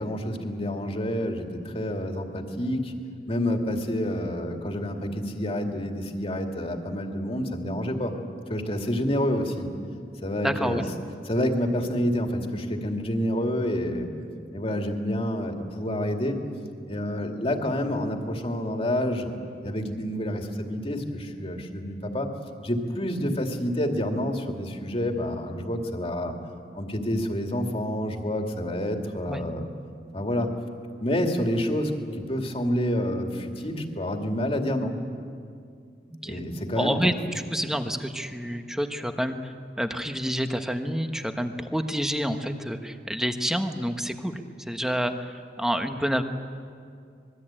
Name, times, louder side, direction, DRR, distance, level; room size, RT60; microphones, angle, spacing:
voice 1, 0.0-2.9 3.3-8.1 8.5-9.7 10.2-10.8 11.3-14.1 14.5-16.4 16.9-19.3 19.6-22.3 22.6-26.4 26.7-29.7 30.1-30.5 31.0-35.0 36.2-37.1, left 1 dB, 35° left, 3 dB, 2.3 m, -28 dB
voice 2, 10.4-10.8 29.3-29.4 36.1-36.4 36.8-37.1 37.5-46.2, equal, 5° right, 6 dB, 1.2 m, -28 dB
26.0 x 21.5 x 8.9 m, 2.3 s
head